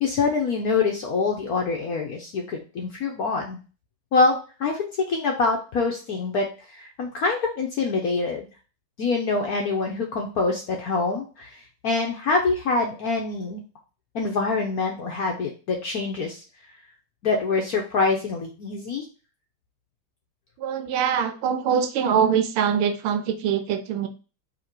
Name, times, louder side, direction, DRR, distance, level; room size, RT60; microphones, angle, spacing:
voice 1, 0.0-3.6 4.1-6.5 6.7-8.5 9.0-11.5 11.8-13.6 14.1-16.4 17.2-19.0, left 4 dB, 65° left, 1 dB, 0.9 m, -25 dB
voice 2, 20.6-24.1, right 7 dB, 85° right, 8 dB, 1.5 m, -23 dB
4.0 x 2.9 x 4.4 m, 0.34 s
omnidirectional pair, 2.3 m